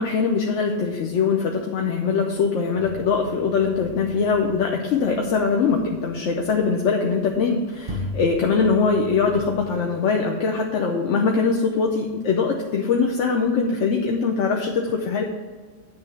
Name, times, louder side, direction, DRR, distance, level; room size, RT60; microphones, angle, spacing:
voice 1, 0.0-15.2, left 5 dB, 75° left, 2 dB, 1.1 m, -22 dB
sound 1, 2.7-6.7 7.3-7.4 7.9-9.8, left 1 dB, 45° right, 1.0 m, -38 dB
9.8 x 3.4 x 6.8 m, 1.5 s
omnidirectional pair, 1.3 m